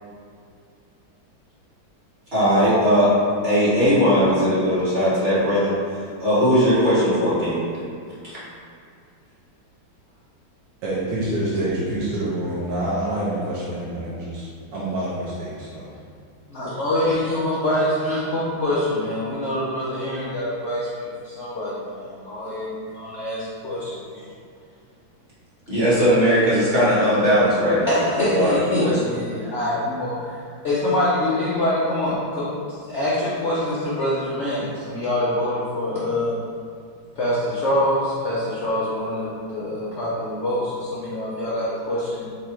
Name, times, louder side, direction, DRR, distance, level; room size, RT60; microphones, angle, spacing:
voice 1, 2.3-3.1 3.4-5.7 6.2-7.6 25.7-28.0 28.3-28.9, equal, 30° right, -10 dB, 1.5 m, -18 dB
voice 2, 10.8-15.9, right 1 dB, 70° right, -8 dB, 1.4 m, -27 dB
voice 3, 16.5-24.3 27.9-30.4 30.6-36.4 37.2-42.2, left 1 dB, 75° left, -8 dB, 0.6 m, -25 dB
4.2 x 2.5 x 4.2 m, 2.3 s
omnidirectional pair, 2.2 m